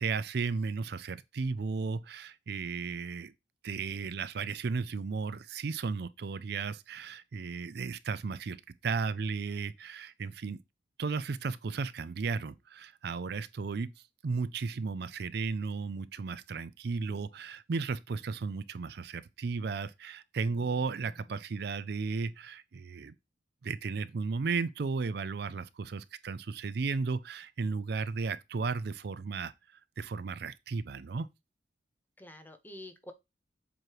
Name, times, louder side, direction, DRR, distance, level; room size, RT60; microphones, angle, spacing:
voice 1, 0.0-3.3 3.6-10.6 11.0-13.9 14.2-23.1 23.6-29.5 30.0-31.3, right 4 dB, 55° right, 0.4 m, -34 dB
voice 2, 20.5-21.3 32.2-33.1, left 1 dB, 10° left, 0.6 m, -49 dB
7.6 x 3.1 x 4.6 m
head